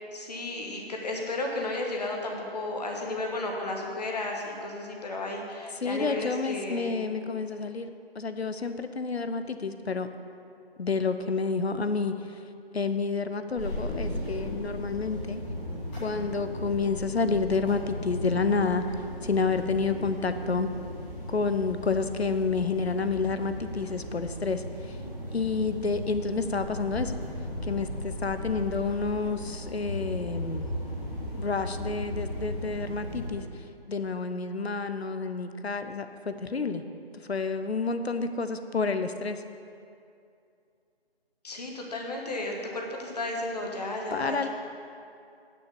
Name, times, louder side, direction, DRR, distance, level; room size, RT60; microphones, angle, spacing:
voice 1, 0.0-7.0 41.4-44.5, left 2 dB, 40° left, 0 dB, 1.3 m, -33 dB
voice 2, 5.8-10.1 10.8-12.4 12.7-15.4 16.0-18.8 19.2-20.7 21.3-25.0 25.3-27.1 27.6-30.7 31.3-36.8 37.3-39.4 44.1-44.5, left 4 dB, 80° left, 9 dB, 0.8 m, -29 dB
sound 1, 13.6-33.3, equal, 5° left, 0.9 m, -36 dB
9.4 x 6.4 x 7.0 m, 2.5 s
figure-of-eight pair, 150°, 32 cm